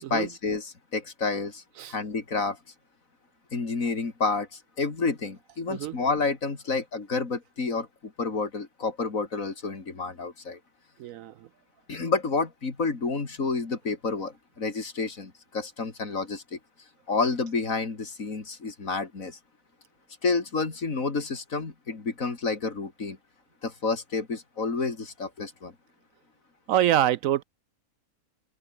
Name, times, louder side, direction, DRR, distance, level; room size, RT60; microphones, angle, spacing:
voice 1, 0.1-1.6 1.9-2.6 3.5-4.5 4.8-10.6 11.9-16.6 17.1-19.4 20.2-23.2 23.6-25.7, left 4 dB, 60° left, 3.2 m, -29 dB
voice 2, 11.0-11.3 26.7-27.4, right 12 dB, 70° right, 0.9 m, -25 dB
open air
omnidirectional pair, 1.6 m